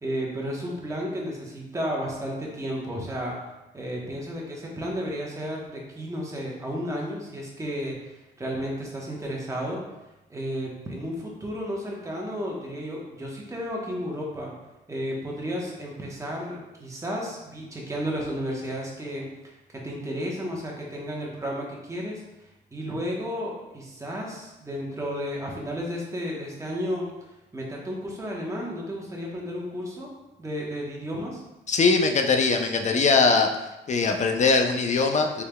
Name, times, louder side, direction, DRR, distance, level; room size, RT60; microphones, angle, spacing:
voice 1, 0.0-3.4 3.7-9.8 10.3-14.5 14.9-22.2 22.7-27.0 27.5-30.1 30.4-31.4, equal, 15° right, -2 dB, 1.0 m, -33 dB
voice 2, 31.7-33.5 33.9-35.4, left 4 dB, 35° left, 5 dB, 0.5 m, -21 dB
4.6 x 3.2 x 2.2 m, 0.97 s
cardioid pair, 90°, 20 cm